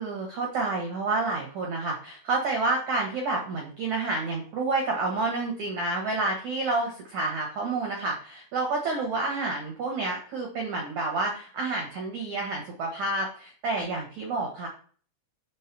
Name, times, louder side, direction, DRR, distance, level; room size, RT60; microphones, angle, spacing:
voice 1, 0.0-14.7, right 3 dB, 90° right, 0 dB, 1.6 m, -29 dB
7.5 x 3.5 x 6.0 m, 0.42 s
omnidirectional pair, 5.7 m